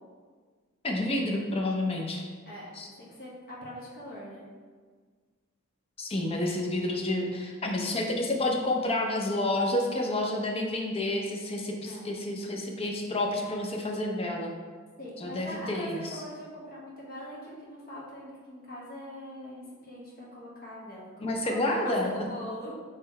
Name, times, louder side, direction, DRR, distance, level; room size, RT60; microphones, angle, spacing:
voice 1, 0.8-2.3 2.8-2.9 6.0-14.5 15.2-16.2 21.2-22.1, left 1 dB, 25° left, 1 dB, 0.5 m, -29 dB
voice 2, 3.0-4.4 11.8-12.0 15.0-22.8, equal, 45° left, -6 dB, 1.2 m, -42 dB
3.8 x 3.2 x 4.1 m, 1.5 s
head